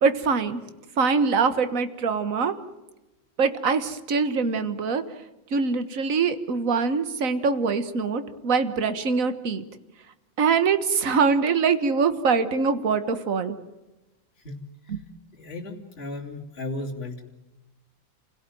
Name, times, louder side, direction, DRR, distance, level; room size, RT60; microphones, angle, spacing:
voice 1, 0.0-0.6 1.0-2.5 3.4-5.0 5.5-9.6 10.4-13.6 14.9-15.0, right 5 dB, 45° right, 11 dB, 1.7 m, -23 dB
voice 2, 15.4-17.2, left 2 dB, 30° left, -2 dB, 3.2 m, -35 dB
29.5 x 17.0 x 9.2 m, 1.0 s
omnidirectional pair, 2.1 m